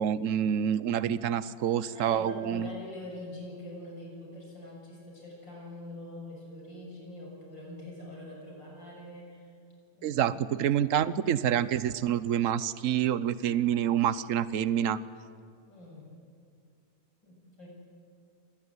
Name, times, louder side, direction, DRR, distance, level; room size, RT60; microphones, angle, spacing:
voice 1, 0.0-2.7 10.0-15.0, right 9 dB, 55° right, 16 dB, 0.9 m, -27 dB
voice 2, 1.9-9.5 9.9-10.2 15.6-16.1 17.2-17.7, left 1 dB, 75° left, -1 dB, 7.6 m, -44 dB
26.5 x 19.5 x 9.7 m, 2.3 s
omnidirectional pair, 2.0 m